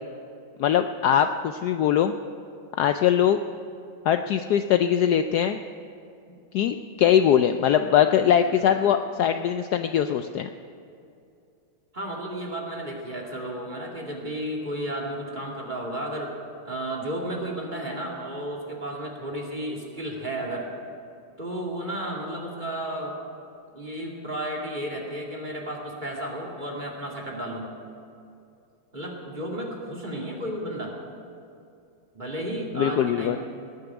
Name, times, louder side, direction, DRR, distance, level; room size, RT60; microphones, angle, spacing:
voice 1, 0.6-2.1 2.8-3.4 4.0-5.6 6.5-10.5 32.7-33.4, left 9 dB, 85° left, 8 dB, 0.8 m, -21 dB
voice 2, 8.4-8.8 11.9-16.3 16.6-20.7 21.4-23.1 23.7-27.7 28.9-31.0 32.1-33.4, right 1 dB, 20° right, -2 dB, 2.4 m, -33 dB
19.0 x 6.7 x 9.7 m, 2.6 s
omnidirectional pair, 2.3 m